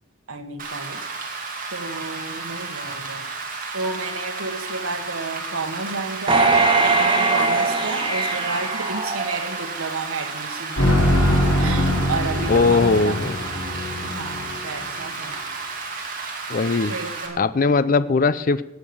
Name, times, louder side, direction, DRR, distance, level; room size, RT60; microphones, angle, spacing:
voice 1, 0.3-1.1 1.7-3.2 3.7-6.5 6.8-11.0 11.6-13.2 14.0-15.4 16.9-17.5, right 3 dB, 85° right, 6 dB, 1.4 m, -31 dB
Rain, 0.6-17.3, right 4 dB, 40° right, 2.7 m, -32 dB
sound 1, 6.3-9.7 10.2-10.3, right 3 dB, 25° right, 1.7 m, -21 dB
sound 2, 10.8-14.8, equal, 85° left, 5.0 m, -22 dB
voice 2, 12.5-13.4 16.5-16.9 17.4-18.6, left 4 dB, 40° left, 15 dB, 0.4 m, -19 dB
17.5 x 6.6 x 6.9 m, 0.96 s
head